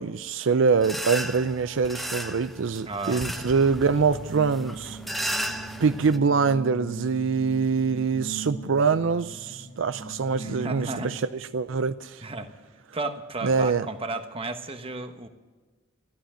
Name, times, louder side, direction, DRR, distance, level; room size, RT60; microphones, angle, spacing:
voice 1, 0.0-5.0 5.8-11.3 11.5-12.2 13.4-13.9, right 5 dB, 70° right, 0.5 m, -24 dB
sound 1, 0.8-6.2, equal, ahead, 1.0 m, -35 dB
sound 2, 2.8-11.4, right 3 dB, 50° left, 1.5 m, -41 dB
voice 2, 2.8-3.3 10.4-11.1 12.2-12.5 12.9-15.3, right 3 dB, 30° right, 1.2 m, -33 dB
14.0 x 12.0 x 8.7 m
head